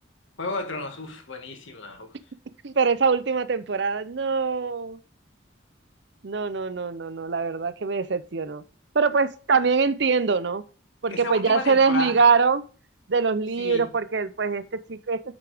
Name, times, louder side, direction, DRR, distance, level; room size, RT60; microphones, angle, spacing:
voice 1, 0.4-2.1 11.1-12.2 13.6-13.9, left 3 dB, 80° left, 1.9 m, -32 dB
voice 2, 2.6-5.0 6.2-8.6 8.9-10.6 11.0-12.6 13.1-15.3, right 5 dB, 60° right, 0.6 m, -23 dB
8.4 x 5.9 x 3.5 m
head